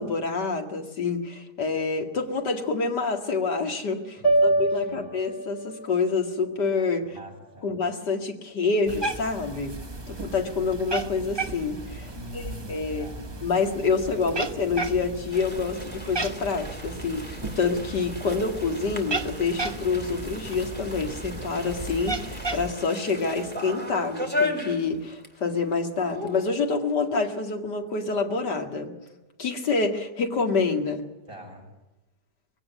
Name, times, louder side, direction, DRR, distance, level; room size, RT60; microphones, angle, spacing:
voice 1, 0.0-7.1 7.6-9.8 10.1-12.4 12.7-13.1 13.4-28.9 29.4-31.0, left 4 dB, 85° left, 4 dB, 2.7 m, -27 dB
sound 1, 4.2-8.5, right 2 dB, 70° left, 4.3 m, -28 dB
voice 2, 4.2-5.1 7.0-7.7 12.1-13.3 31.3-31.7, left 2 dB, 35° right, 0 dB, 6.8 m, -45 dB
Cat, 8.9-22.7, right 3 dB, 15° right, 1.1 m, -35 dB
sound 2, 15.3-25.4 25.7-25.8 26.1-26.5, left 2 dB, 5° left, 2.9 m, -36 dB
22.0 x 17.0 x 9.2 m, 1.0 s
omnidirectional pair, 1.8 m